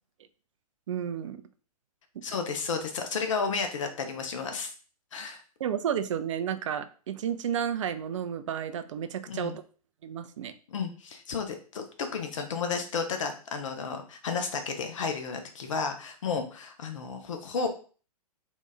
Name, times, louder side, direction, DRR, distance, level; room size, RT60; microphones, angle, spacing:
voice 1, 0.9-1.4 2.2-2.3 5.6-9.6 10.0-10.5, right 8 dB, 50° right, 11 dB, 0.5 m, -32 dB
voice 2, 2.2-4.7 5.1-5.4 9.3-9.5 10.7-17.7, left 5 dB, 55° left, 6 dB, 0.7 m, -32 dB
4.0 x 2.4 x 4.0 m, 0.39 s
figure-of-eight pair, 115°, 20 cm